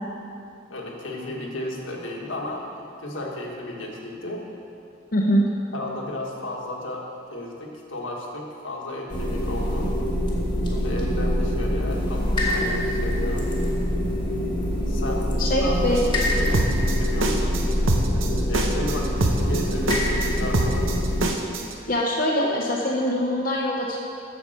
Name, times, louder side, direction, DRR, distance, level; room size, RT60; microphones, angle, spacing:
voice 1, 0.7-4.4 5.7-9.9 10.7-13.5 14.9-15.3 15.6-17.6 17.9-20.9, left 1 dB, 80° left, -1 dB, 1.5 m, -34 dB
voice 2, 5.1-5.5 15.4-16.0 21.9-24.0, equal, 45° left, -3 dB, 0.9 m, -23 dB
sound 1, 9.1-21.3, equal, 25° left, 1.3 m, -24 dB
sound 2, 15.9-21.7, right 2 dB, 80° right, 0.9 m, -25 dB
8.1 x 7.1 x 6.4 m, 2.6 s
head